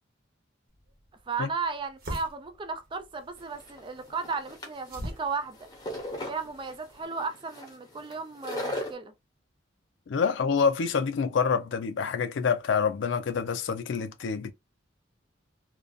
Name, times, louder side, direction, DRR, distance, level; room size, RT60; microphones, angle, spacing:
sound 1, 0.7-7.0, equal, 55° right, 0.8 m, -44 dB
voice 1, 1.3-5.7 6.3-9.1, right 4 dB, 25° right, 0.4 m, -35 dB
sound 2, 3.4-8.9, left 1 dB, 20° left, 0.7 m, -38 dB
voice 2, 10.1-14.5, left 6 dB, 70° left, 0.4 m, -27 dB
2.5 x 2.2 x 2.3 m
head